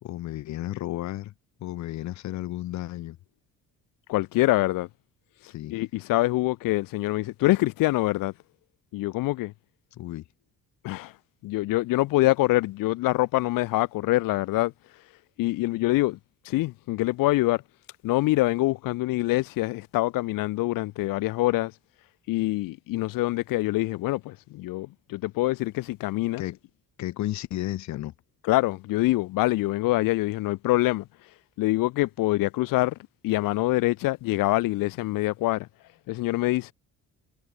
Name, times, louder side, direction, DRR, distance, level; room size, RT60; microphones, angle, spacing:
voice 1, 0.0-1.3 1.6-3.2 5.5-5.7 9.9-10.2 26.4-26.6 27.0-28.1, left 14 dB, 60° left, 1.5 m, -33 dB
voice 2, 4.1-4.9 5.7-8.3 8.9-9.5 10.8-11.1 11.4-14.7 15.4-16.2 16.4-17.6 18.0-21.7 22.3-26.4 28.4-31.0 31.6-33.0 33.2-35.7 36.1-36.7, left 19 dB, 85° left, 1.3 m, -25 dB
cardioid pair, 170°, 33 cm